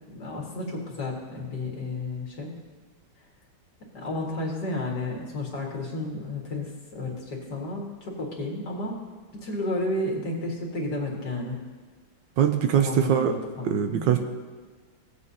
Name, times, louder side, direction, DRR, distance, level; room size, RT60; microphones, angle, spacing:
voice 1, 0.1-2.5 3.9-9.0 9.3-11.6 12.7-14.2, left 2 dB, 55° left, -2 dB, 2.3 m, -32 dB
voice 2, 12.4-13.3 13.6-14.2, right 9 dB, 75° right, 7 dB, 1.2 m, -22 dB
17.5 x 8.2 x 2.8 m, 1.5 s
omnidirectional pair, 2.2 m